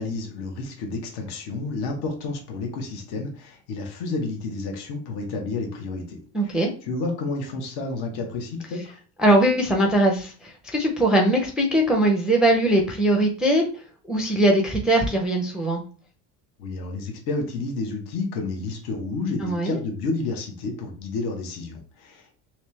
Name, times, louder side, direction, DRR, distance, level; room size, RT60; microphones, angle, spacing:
voice 1, 0.0-8.9 16.6-22.3, left 3 dB, 65° left, 3 dB, 1.1 m, -30 dB
voice 2, 6.3-6.7 9.2-13.6 14.1-15.8 19.4-19.8, right 1 dB, ahead, 1 dB, 0.5 m, -21 dB
3.2 x 2.9 x 3.2 m, 0.39 s
supercardioid pair, 105°, 42 cm